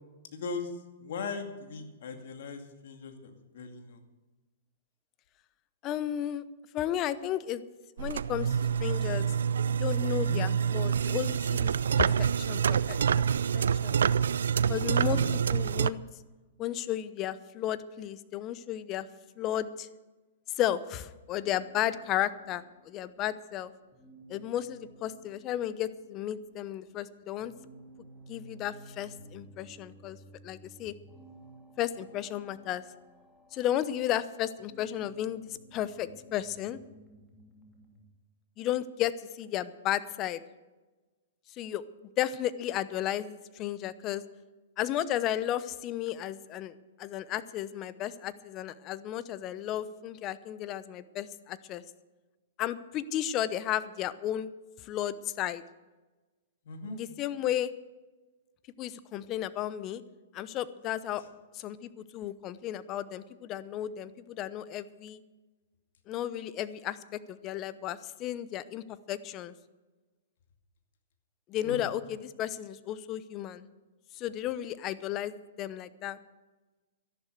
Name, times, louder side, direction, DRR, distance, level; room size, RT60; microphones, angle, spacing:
voice 1, 0.3-0.7 1.0-4.0 10.1-10.5 15.1-15.3 56.6-57.0 61.2-61.3 71.6-71.8, left 4 dB, 65° left, 5 dB, 2.3 m, -39 dB
voice 2, 5.8-6.4 6.7-7.6 8.0-8.5 8.8-9.3 9.6-13.3 13.5-13.9 14.7-15.2 15.5-16.0 16.6-19.1 19.4-19.9 20.6-23.7 24.3-27.5 28.3-30.2 30.4-30.9 31.8-32.8 33.5-36.8 38.6-40.4 41.6-41.8 42.2-44.2 44.8-51.8 52.6-54.5 54.8-55.6 56.9-57.7 58.8-60.0 60.3-61.2 61.5-65.2 66.1-67.0 67.3-69.5 71.5-73.6 74.1-76.2, left 12 dB, 35° left, 15 dB, 0.8 m, -33 dB
sound 1, 8.0-15.9, right 7 dB, 75° right, 0.4 m, -27 dB
sound 2, 21.4-38.1, right 1 dB, 10° left, 2.7 m, -55 dB
13.0 x 11.5 x 6.6 m, 1.2 s
hypercardioid pair, 120°, 0 cm